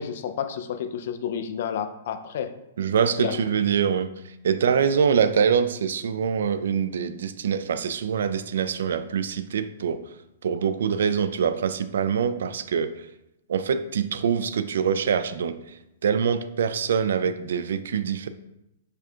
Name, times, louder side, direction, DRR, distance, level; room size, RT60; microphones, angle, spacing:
voice 1, 0.0-2.5 3.2-3.4, left 8 dB, 60° left, 0.5 m, -30 dB
voice 2, 2.8-10.0 10.4-13.1 13.5-18.3, right 7 dB, 75° right, 0.3 m, -24 dB
4.9 x 2.3 x 4.4 m
hypercardioid pair, 145°, 0 cm